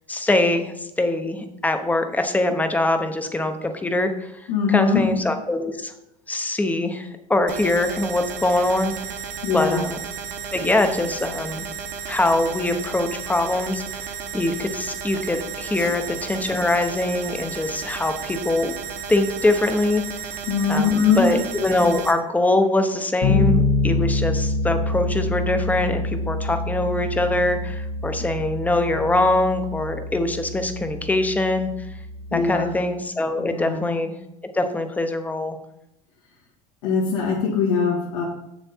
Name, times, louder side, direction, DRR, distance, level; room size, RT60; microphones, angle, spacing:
voice 1, 0.1-4.3 4.7-5.9 6.3-8.9 9.2-10.0 10.5-11.7 12.1-14.1 14.3-18.8 19.1-20.0 20.7-31.7 32.3-34.1 34.5-35.6, left 2 dB, 10° left, 8 dB, 0.8 m, -23 dB
voice 2, 4.5-5.0 9.4-9.8 15.7-15.9 20.5-21.3 32.3-32.7 33.4-33.8 36.8-38.2, left 6 dB, 85° left, -6 dB, 2.2 m, -22 dB
sound 1, 7.5-22.1, right 7 dB, 45° right, 1.1 m, -33 dB
Bass guitar, 23.2-32.9, left 3 dB, 65° left, 1.3 m, -26 dB
7.1 x 6.8 x 4.4 m, 0.86 s
supercardioid pair, 125°, 17 cm